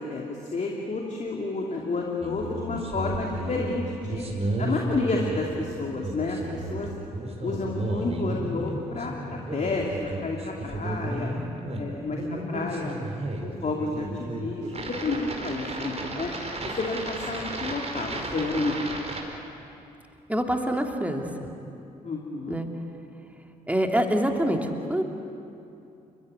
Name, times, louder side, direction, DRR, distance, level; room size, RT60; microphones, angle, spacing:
voice 1, 0.0-4.2 4.6-6.9 7.4-11.3 11.8-12.2 12.5-13.0 13.4-16.3 16.6-18.9 22.0-22.6, left 3 dB, 40° left, -1 dB, 2.7 m, -30 dB
sound 1, 2.2-19.2, right 1 dB, 35° right, 4.9 m, -33 dB
voice 2, 20.3-21.5 22.5-22.7 23.7-25.0, equal, 5° right, 3 dB, 2.9 m, -26 dB
29.5 x 15.5 x 9.4 m, 2.7 s
figure-of-eight pair, 40°, 19 cm